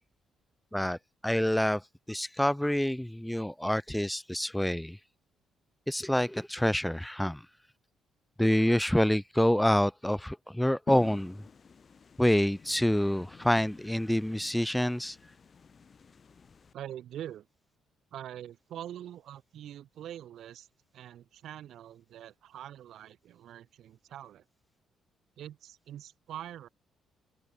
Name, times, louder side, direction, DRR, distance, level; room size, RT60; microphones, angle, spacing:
voice 1, 1.2-5.0 5.9-7.4 8.4-11.4 12.2-15.2, left 1 dB, 5° left, 0.6 m, -27 dB
sound 1, 10.9-16.7, left 5 dB, 40° left, 6.4 m, -48 dB
voice 2, 16.7-17.5 18.1-20.7 20.9-24.4 25.4-26.7, right 11 dB, 75° right, 2.3 m, -44 dB
open air
cardioid pair, 90°, 0 cm